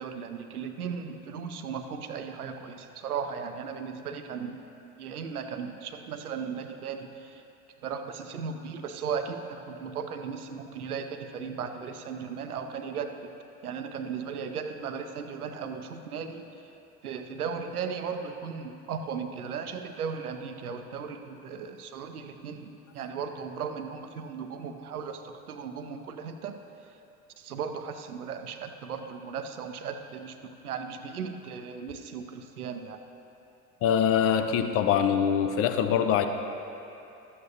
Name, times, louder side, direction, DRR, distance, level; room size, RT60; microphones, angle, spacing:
voice 1, 0.0-4.6 5.0-7.4 7.8-13.3 13.6-16.5 17.0-26.6 27.4-30.4 30.6-33.0, right 6 dB, 75° right, 7 dB, 0.7 m, -36 dB
voice 2, 33.8-36.3, left 8 dB, 30° left, 7 dB, 0.6 m, -24 dB
12.5 x 8.4 x 2.8 m, 2.8 s
figure-of-eight pair, 75°, 44 cm